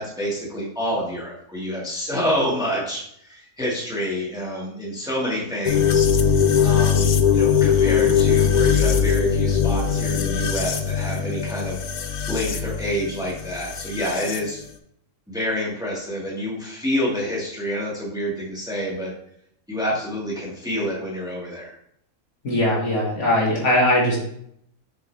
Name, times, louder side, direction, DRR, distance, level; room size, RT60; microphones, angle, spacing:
voice 1, 0.0-6.1 6.6-11.8 12.3-14.6 15.3-19.1 19.7-21.7, equal, 5° right, -4 dB, 1.5 m, -28 dB
sound 1, 5.6-14.4, left 7 dB, 90° left, 0.4 m, -20 dB
voice 2, 22.4-24.2, left 1 dB, 60° left, -5 dB, 2.3 m, -20 dB
6.4 x 4.8 x 3.3 m, 0.70 s
omnidirectional pair, 1.4 m